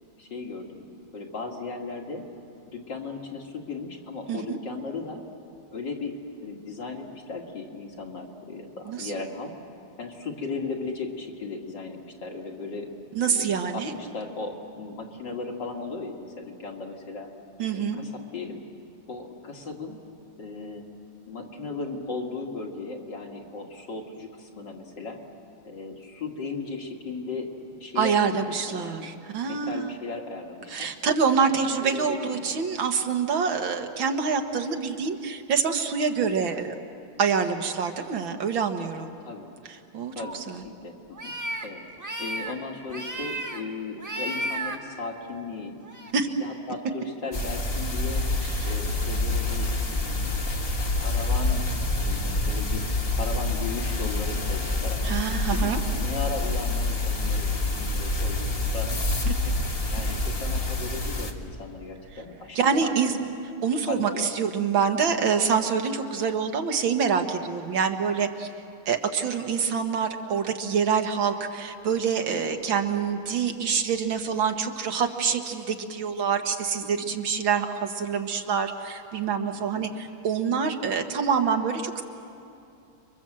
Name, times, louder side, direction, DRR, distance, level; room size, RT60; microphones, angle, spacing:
voice 1, 0.2-0.9 1.1-2.2 2.7-5.2 5.7-6.1 6.4-9.5 10.0-12.9 13.3-17.3 17.7-18.6 19.1-20.0 20.4-20.8 21.3-25.2 25.6-27.5 27.8-29.1 29.5-30.9 31.8-32.5 39.2-39.5 40.1-41.3 41.6-41.8 42.2-45.8 46.4-48.2 48.6-50.3 51.0-52.8 53.2-55.2 55.5-59.0 59.5-59.6 59.9-63.3 63.9-64.2 76.8-77.1 79.5-79.8, left 4 dB, 55° left, 1 dB, 3.0 m, -36 dB
voice 2, 13.2-13.9 17.6-18.0 28.0-29.9 30.7-36.8 37.2-39.1 39.9-40.6 46.1-46.3 48.4-48.7 55.0-55.8 62.6-63.1 63.6-68.5 68.9-82.0, right 6 dB, 65° right, 5 dB, 2.1 m, -26 dB
sound 1, 40.2-40.3 41.1-41.7 42.0-42.5 42.9-43.6 44.0-44.8 45.8-46.1, right 1 dB, 10° right, 1.3 m, -33 dB
sound 2, 47.3-61.3, left 2 dB, 30° left, 1.5 m, -27 dB
29.5 x 23.5 x 7.6 m, 2.7 s
omnidirectional pair, 2.3 m